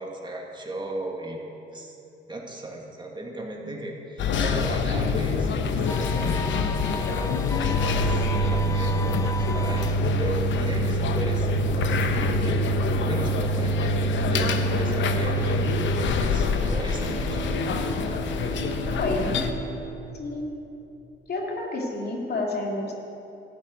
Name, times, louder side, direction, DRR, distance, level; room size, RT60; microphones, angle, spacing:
voice 1, 0.0-1.4 1.7-2.0 2.3-6.5 6.9-17.4, right 1 dB, 25° right, 0 dB, 1.9 m, -36 dB
sound 1, 4.2-19.5, left 2 dB, 70° left, 0.9 m, -25 dB
sound 2, 5.9-10.2, left 4 dB, 15° left, 0.3 m, -35 dB
Bowed string instrument, 16.1-21.1, right 5 dB, 60° right, 2.0 m, -38 dB
voice 2, 19.0-19.5 20.1-20.4 21.3-22.9, left 2 dB, 55° left, -1 dB, 2.5 m, -29 dB
13.0 x 6.7 x 9.3 m, 2.9 s
cardioid pair, 90°, 20 cm